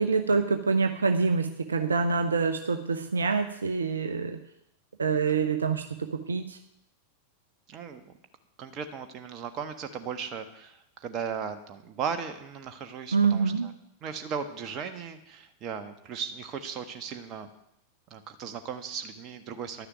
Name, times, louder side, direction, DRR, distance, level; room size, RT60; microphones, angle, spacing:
voice 1, 0.0-4.4 5.0-6.6 13.1-13.7, right 4 dB, 75° right, 6 dB, 0.8 m, -26 dB
voice 2, 7.7-8.1 8.6-13.7 14.0-17.5 18.1-19.9, right 6 dB, 35° right, 8 dB, 1.4 m, -37 dB
12.0 x 6.7 x 9.2 m, 0.78 s
figure-of-eight pair, 90°, 0 cm